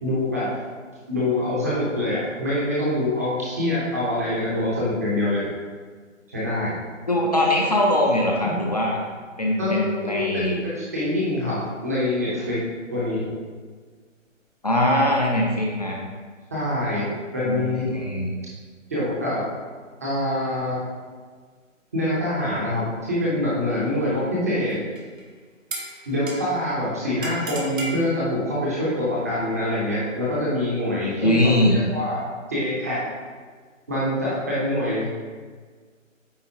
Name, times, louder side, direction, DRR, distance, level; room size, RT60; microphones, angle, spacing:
voice 1, 0.0-0.5 1.1-5.4 6.3-6.8 8.4-8.5 9.6-12.6 12.9-13.3 16.5-17.9 18.9-19.4 20.0-20.8 21.9-24.8 26.1-32.2 32.5-33.0 33.9-35.1, left 1 dB, 10° right, -8 dB, 0.6 m, -25 dB
voice 2, 7.1-9.0 9.4-10.6 14.6-16.0 17.4-18.3 31.2-31.8, left 1 dB, 30° left, -2 dB, 0.5 m, -21 dB
sound 1, 25.0-25.2 25.7-26.7 27.2-28.0, right 1 dB, 85° right, 1.4 m, -34 dB
8.6 x 4.0 x 2.8 m, 1.5 s
figure-of-eight pair, 150°, 39 cm